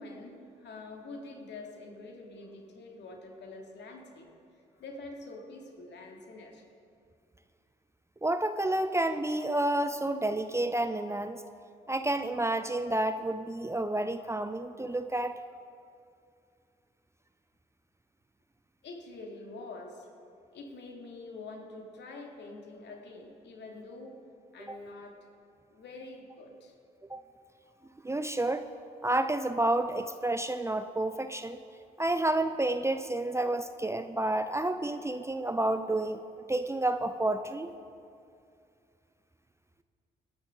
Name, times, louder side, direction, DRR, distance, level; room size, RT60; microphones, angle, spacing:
voice 1, 0.0-4.3 4.7-6.6 18.8-20.1 20.5-24.2 24.5-25.2 25.7-26.7, left 2 dB, 55° left, 2 dB, 2.4 m, -46 dB
voice 2, 8.2-11.4 11.9-15.4 24.7-24.8 27.1-27.2 28.0-28.7 29.0-31.6 32.0-37.7, right 1 dB, 15° right, 9 dB, 0.6 m, -30 dB
25.0 x 9.9 x 3.8 m, 2.4 s
figure-of-eight pair, 40°, 21 cm